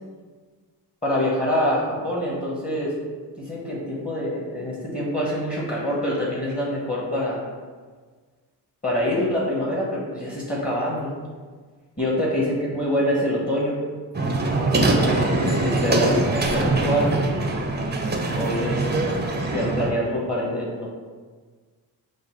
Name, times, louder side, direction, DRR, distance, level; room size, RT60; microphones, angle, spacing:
voice 1, 1.0-2.9 3.4-7.4 8.8-11.1 12.0-13.8 14.4-17.2 18.4-19.1 19.5-20.9, equal, 20° left, -5 dB, 1.3 m, -25 dB
sound 1, 14.1-19.9, right 2 dB, 20° right, 0.7 m, -23 dB
5.2 x 2.0 x 4.5 m, 1.5 s
supercardioid pair, 50°, 45 cm